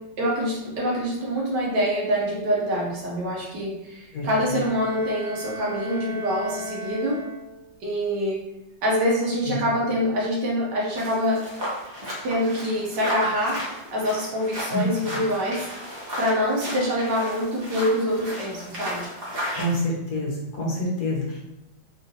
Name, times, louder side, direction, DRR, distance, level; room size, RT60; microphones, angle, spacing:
voice 1, 0.2-7.2 7.8-8.4 8.8-11.4 12.2-13.6 13.9-15.6 16.2-19.0, equal, 70° right, -4 dB, 1.4 m, -25 dB
Bowed string instrument, 4.3-7.8, left 1 dB, 90° left, 0.5 m, -36 dB
sound 1, 11.0-19.8, equal, 40° right, 1.0 m, -34 dB
voice 2, 19.6-21.4, left 1 dB, 65° left, -4 dB, 1.3 m, -27 dB
3.7 x 2.4 x 2.7 m, 0.91 s
omnidirectional pair, 2.0 m